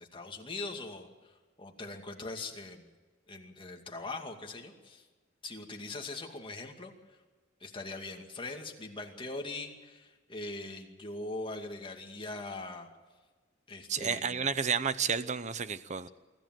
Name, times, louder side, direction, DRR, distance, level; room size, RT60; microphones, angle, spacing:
voice 1, 0.0-2.9 3.3-5.1 5.4-6.9 7.6-12.9 13.7-14.5, left 2 dB, 25° left, 3 dB, 2.3 m, -41 dB
voice 2, 13.9-16.1, right 6 dB, 40° right, 14 dB, 0.8 m, -31 dB
24.5 x 14.5 x 7.7 m, 1.3 s
head